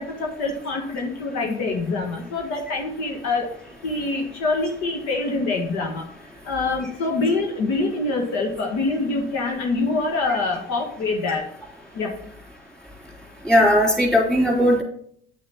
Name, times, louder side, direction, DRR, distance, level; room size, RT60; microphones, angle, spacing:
voice 1, 0.0-6.0 6.4-11.5 11.9-12.1, left 3 dB, 55° left, 1 dB, 1.6 m, -25 dB
voice 2, 13.4-14.8, equal, ahead, -2 dB, 3.6 m, -18 dB
9.7 x 6.5 x 4.3 m, 0.65 s
figure-of-eight pair, 65°, 34 cm